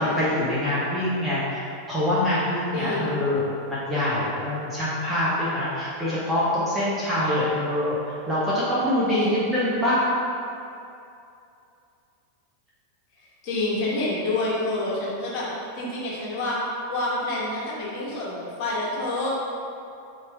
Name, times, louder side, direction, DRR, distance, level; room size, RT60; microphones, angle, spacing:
voice 1, 0.0-1.6 1.9-10.0, left 1 dB, 20° right, -9 dB, 1.2 m, -25 dB
voice 2, 2.7-3.2 9.1-9.5 13.4-15.5 15.8-16.6 16.9-19.3, left 2 dB, 50° left, -6 dB, 1.5 m, -28 dB
4.8 x 3.0 x 3.5 m, 2.6 s
hypercardioid pair, 100°, 0 cm